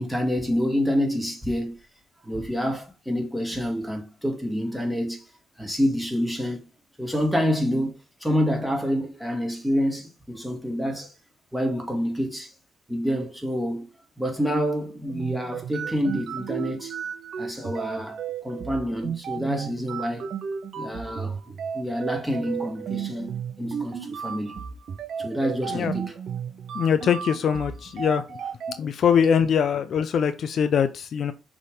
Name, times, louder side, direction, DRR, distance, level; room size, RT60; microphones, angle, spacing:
voice 1, 0.0-1.8 2.2-5.3 5.6-6.7 7.0-11.2 11.5-12.5 12.9-13.9 14.2-17.0 17.4-20.3 20.8-24.6 25.2-26.1, equal, 5° right, 2.2 m, -27 dB
sound 1, 15.1-28.8, right 7 dB, 60° right, 0.8 m, -34 dB
voice 2, 26.7-28.4 28.8-31.3, left 7 dB, 60° left, 0.6 m, -22 dB
6.3 x 3.7 x 5.1 m
cardioid pair, 90°, 0 cm